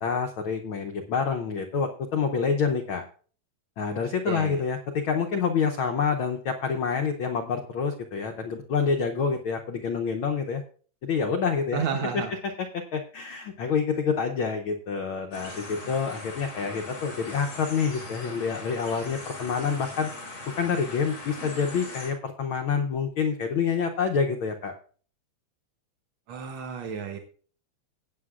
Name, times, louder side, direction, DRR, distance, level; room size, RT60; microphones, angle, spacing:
voice 1, 0.0-3.0 3.8-10.6 11.0-11.8 12.1-12.2 12.6-20.1 20.6-24.7, left 6 dB, 85° left, 5 dB, 1.1 m, -27 dB
voice 2, 4.2-4.6 11.7-12.3 26.3-27.2, right 6 dB, 65° right, 4 dB, 1.3 m, -31 dB
sound 1, 15.3-22.1, left 2 dB, 45° left, 4.2 m, -40 dB
17.5 x 8.7 x 2.4 m, 0.42 s
omnidirectional pair, 3.3 m